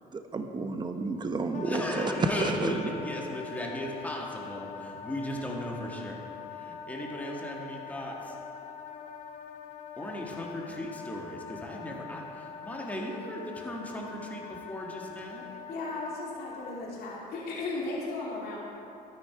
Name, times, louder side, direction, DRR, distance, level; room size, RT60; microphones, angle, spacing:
voice 1, 0.1-2.8, right 3 dB, 25° right, 6 dB, 1.0 m, -31 dB
Wind instrument woodwind instrument, 1.5-16.8, left 7 dB, 45° left, 0.8 m, -43 dB
voice 2, 1.6-6.2 6.5-8.4 10.0-15.4, equal, 10° left, -2 dB, 2.0 m, -36 dB
voice 3, 15.7-18.6, left 2 dB, 70° left, -4 dB, 2.6 m, -35 dB
12.5 x 10.0 x 4.8 m, 2.9 s
cardioid pair, 110°, 17 cm